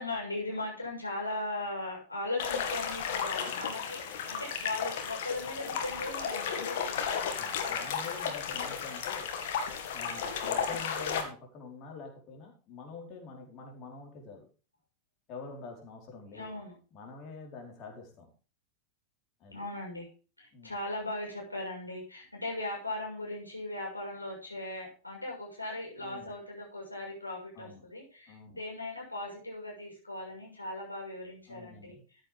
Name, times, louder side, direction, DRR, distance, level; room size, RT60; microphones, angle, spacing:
voice 1, 0.0-4.0 4.3-7.3 16.3-16.7 19.5-20.1 20.4-31.9, left 2 dB, 85° left, -2 dB, 6.6 m, -38 dB
sound 1, 2.4-11.2, left 7 dB, 55° left, 2.2 m, -34 dB
voice 2, 7.4-9.3 9.9-14.5 15.3-16.5 16.9-18.3 19.4-19.6 20.5-20.7 26.0-26.3 27.5-27.8 28.3-28.6 31.5-32.0, left 4 dB, 35° left, 1 dB, 4.8 m, -46 dB
14.0 x 9.1 x 3.7 m, 0.36 s
figure-of-eight pair, 90°, 0 cm